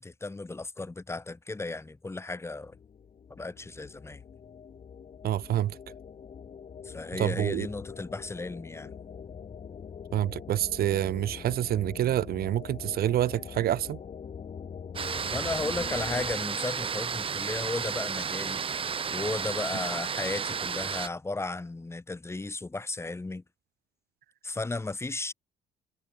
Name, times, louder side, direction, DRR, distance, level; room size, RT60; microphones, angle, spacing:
voice 1, 0.0-2.8 3.3-4.2 6.8-8.9 15.3-18.6 19.1-23.4 24.4-25.3, left 3 dB, 15° left, 6.1 m, -35 dB
sound 1, 2.6-16.4, left 7 dB, 40° left, 7.9 m, -43 dB
voice 2, 5.2-5.8 7.2-7.7 10.1-14.0, right 12 dB, 65° right, 3.9 m, -27 dB
sound 2, 15.0-21.1, right 6 dB, 30° right, 1.4 m, -32 dB
cardioid pair, 110°, 17 cm